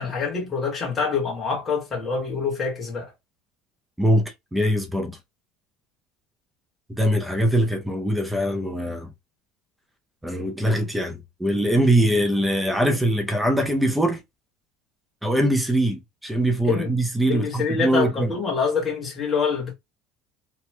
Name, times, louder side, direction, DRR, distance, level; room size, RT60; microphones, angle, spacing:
voice 1, 0.0-3.1 16.6-16.9 17.3-19.7, left 5 dB, 25° left, 1.3 m, -25 dB
voice 2, 4.0-5.2 6.9-9.1 10.2-14.2 15.2-18.3, right 1 dB, 5° right, 0.5 m, -22 dB
3.0 x 2.2 x 3.1 m
cardioid pair, 125°, 0 cm